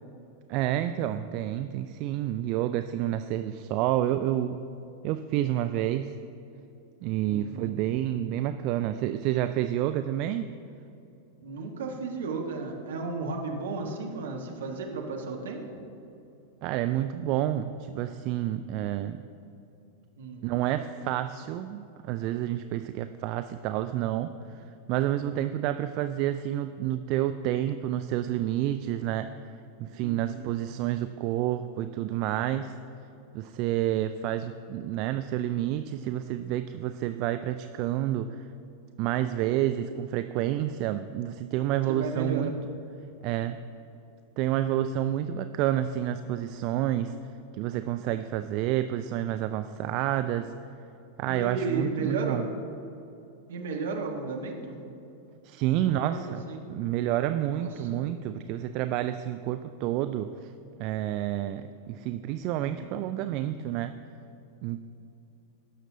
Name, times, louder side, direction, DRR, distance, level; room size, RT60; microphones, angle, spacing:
voice 1, 0.5-4.6 5.0-6.1 7.0-10.5 16.6-19.2 20.4-24.3 24.9-29.3 29.8-32.7 33.3-38.4 39.0-42.5 43.2-43.6 44.4-47.1 47.6-50.5 51.2-52.5 55.4-56.4 56.7-60.5 60.8-61.6 61.9-63.9 64.6-64.9, right 12 dB, 40° right, 9 dB, 0.3 m, -29 dB
voice 2, 7.3-7.7 11.4-15.8 20.2-20.4 30.0-30.5 41.9-42.5 45.0-45.2 51.2-52.4 53.5-54.8 55.8-56.2 56.5-56.6 57.5-58.0 62.5-62.9, right 4 dB, 60° right, 2 dB, 1.4 m, -34 dB
16.5 x 6.6 x 3.9 m, 2.8 s
figure-of-eight pair, 90°, 0 cm